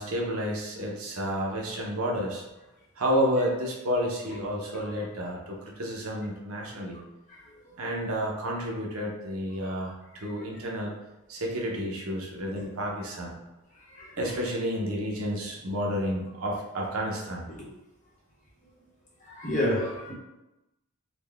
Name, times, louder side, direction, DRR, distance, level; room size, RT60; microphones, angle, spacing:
voice 1, 0.0-2.4 3.0-7.0 7.8-11.0 11.3-13.4 14.2-17.5, equal, 75° right, -2 dB, 0.8 m, -30 dB
voice 2, 19.2-20.1, left 1 dB, 35° left, -5 dB, 1.1 m, -30 dB
3.9 x 2.2 x 3.4 m, 1.0 s
head